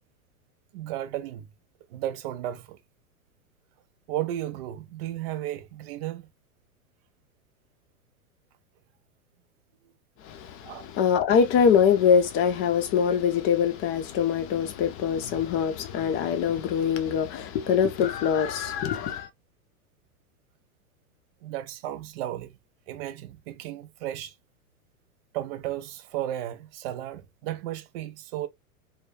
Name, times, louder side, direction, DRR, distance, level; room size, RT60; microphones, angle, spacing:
voice 1, 0.7-1.5 1.9-2.8 4.1-6.3 10.6-10.9 21.4-22.5 22.9-24.3 25.3-28.5, right 13 dB, 45° right, 0.4 m, -34 dB
voice 2, 10.2-19.3, left 7 dB, 30° left, 0.6 m, -24 dB
2.2 x 2.1 x 3.2 m
hypercardioid pair, 105°, 44 cm